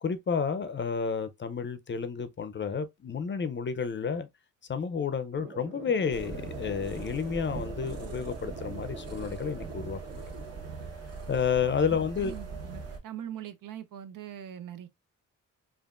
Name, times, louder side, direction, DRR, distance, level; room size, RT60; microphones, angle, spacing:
voice 1, 0.0-4.3 4.7-10.0 11.3-12.3, left 6 dB, 35° left, 0.5 m, -30 dB
sound 1, 5.3-11.4, right 1 dB, 35° right, 1.8 m, -45 dB
sound 2, 6.1-13.0, right 4 dB, 50° right, 1.3 m, -41 dB
voice 2, 11.9-14.9, right 10 dB, 75° right, 0.7 m, -42 dB
5.1 x 2.5 x 2.4 m
cardioid pair, 115°, 32 cm